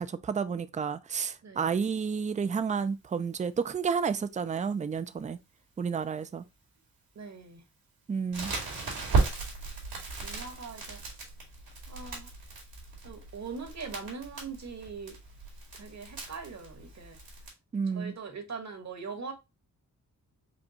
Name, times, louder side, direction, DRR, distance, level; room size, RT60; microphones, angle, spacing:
voice 1, 0.0-5.4 5.8-6.4 8.1-8.5 17.7-18.1, right 6 dB, 20° right, 0.3 m, -31 dB
voice 2, 7.1-7.6 8.6-8.9 10.2-11.0 11.9-12.3 13.0-15.2 15.7-17.2 17.9-19.3, right 5 dB, 50° right, 1.2 m, -41 dB
Crackle, 8.3-17.5, right 4 dB, 80° right, 2.2 m, -35 dB
5.1 x 2.3 x 2.8 m
cardioid pair, 75°, 35 cm